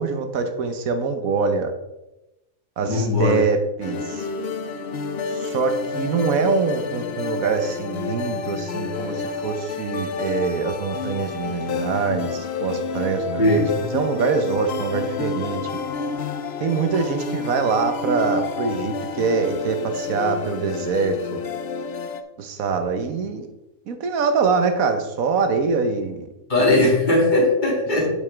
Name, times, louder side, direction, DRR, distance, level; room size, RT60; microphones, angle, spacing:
voice 1, 0.0-1.7 2.8-4.3 5.3-13.6 13.9-15.6 16.6-21.4 22.4-23.5 23.9-26.3, right 5 dB, 60° right, 7 dB, 1.3 m, -24 dB
voice 2, 2.8-3.4 13.4-13.8 26.5-28.1, left 2 dB, 30° left, -3 dB, 2.5 m, -19 dB
sound 1, 3.8-22.2, left 5 dB, 70° left, 0.6 m, -29 dB
8.7 x 7.0 x 3.4 m, 0.95 s
omnidirectional pair, 1.7 m